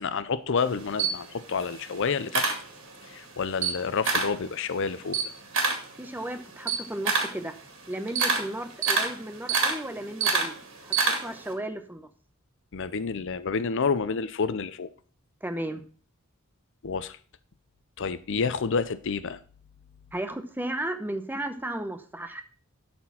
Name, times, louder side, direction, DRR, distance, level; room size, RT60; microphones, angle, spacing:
voice 1, 0.0-2.5 3.1-5.2 12.7-14.9 16.8-17.2 18.0-19.4, left 5 dB, 60° left, 0.6 m, -29 dB
Camera, 0.6-3.2 3.5-4.4 4.8-11.5, right 4 dB, 60° right, 2.1 m, -27 dB
voice 2, 5.9-7.5 7.9-12.1 15.4-15.8 20.1-22.4, right 1 dB, 10° right, 0.9 m, -34 dB
12.0 x 4.4 x 5.6 m
head